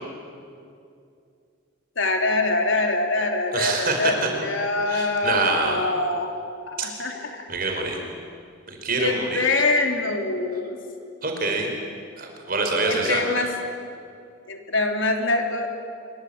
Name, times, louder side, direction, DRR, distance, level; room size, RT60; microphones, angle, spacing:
voice 1, 2.0-6.3 6.7-7.5 9.0-10.8 12.9-13.5 14.5-15.7, left 2 dB, 70° left, 3 dB, 3.5 m, -24 dB
voice 2, 3.5-4.1 4.9-5.8 7.5-8.0 8.7-9.4 11.2-11.7 12.2-13.2, right 3 dB, 45° right, 2 dB, 5.0 m, -25 dB
26.5 x 24.5 x 8.7 m, 2.4 s
head